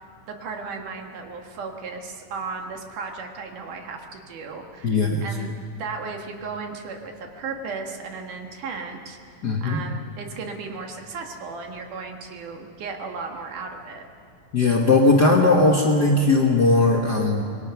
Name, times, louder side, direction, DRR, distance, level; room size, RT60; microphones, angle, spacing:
voice 1, 0.0-9.2 9.6-14.1, right 4 dB, 70° right, 3 dB, 3.2 m, -35 dB
voice 2, 4.8-5.3 9.4-9.8 14.5-17.4, left 2 dB, 40° left, -1 dB, 1.5 m, -18 dB
26.5 x 21.5 x 6.0 m, 2.4 s
omnidirectional pair, 3.8 m